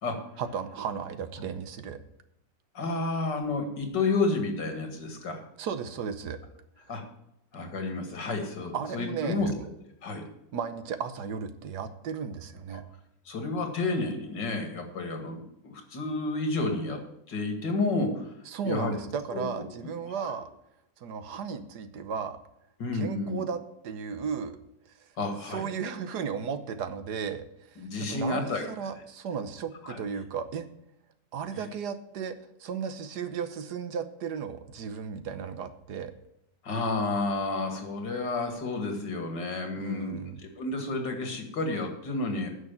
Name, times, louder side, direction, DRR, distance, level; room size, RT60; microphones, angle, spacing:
voice 1, 0.4-2.0 5.6-6.4 6.8-6.9 8.7-9.6 10.5-12.8 18.5-20.5 21.0-22.4 22.9-24.6 24.8-25.1 25.5-30.7 31.3-36.1 39.8-40.4, right 6 dB, 70° right, 11 dB, 1.5 m, -35 dB
voice 2, 2.7-5.4 6.9-7.0 7.5-9.5 10.0-10.2 12.7-12.8 13.3-17.0 17.3-18.3 18.6-18.9 19.3-19.5 20.2-20.3 22.8-23.4 25.2-25.6 27.8-28.6 29.9-30.0 36.6-42.5, left 3 dB, 80° left, 5 dB, 2.8 m, -30 dB
9.7 x 6.6 x 8.9 m, 0.79 s
omnidirectional pair, 1.9 m